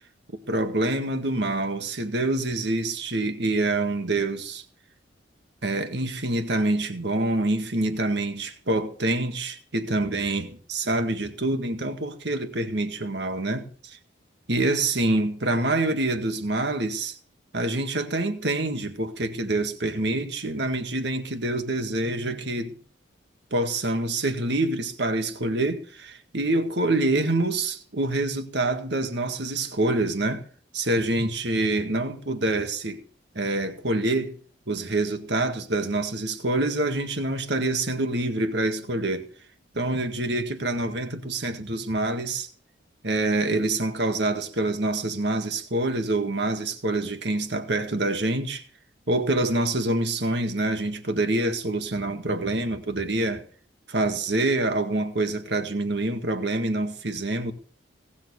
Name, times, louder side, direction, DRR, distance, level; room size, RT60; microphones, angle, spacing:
voice 1, 0.5-4.6 5.6-14.0 14.5-17.2 17.5-22.8 23.5-30.5 30.7-33.0 33.4-34.4 34.7-39.3 39.7-42.5 43.0-48.6 49.1-53.4 53.9-57.5, right 2 dB, 60° right, 1.9 m, -26 dB
18.0 x 7.4 x 7.1 m
head